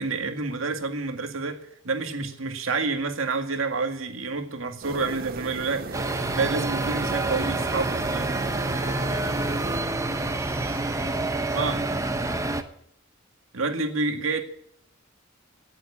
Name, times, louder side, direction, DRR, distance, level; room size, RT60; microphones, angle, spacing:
voice 1, 0.0-8.4 11.5-11.8 13.5-14.4, right 3 dB, 85° right, 2.1 m, -29 dB
sound 1, 4.8-9.8, right 4 dB, 45° right, 0.5 m, -36 dB
sound 2, 5.9-12.6, right 2 dB, 15° right, 1.0 m, -27 dB
voice 2, 8.4-8.5, left 1 dB, 5° left, 5.5 m, -48 dB
17.0 x 7.8 x 8.7 m
head